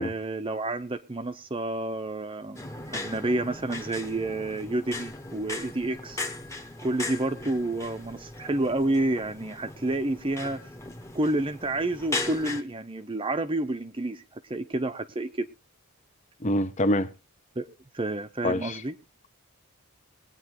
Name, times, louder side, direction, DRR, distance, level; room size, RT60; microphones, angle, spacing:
voice 1, 0.0-2.7 2.9-6.2 6.8-10.7 11.1-15.5 17.6-18.9, right 2 dB, 25° right, 0.7 m, -29 dB
sound 1, 2.6-12.6, left 2 dB, 15° left, 1.1 m, -38 dB
voice 2, 16.4-17.1 18.4-18.8, left 1 dB, 30° left, 0.7 m, -25 dB
22.0 x 9.0 x 3.0 m
head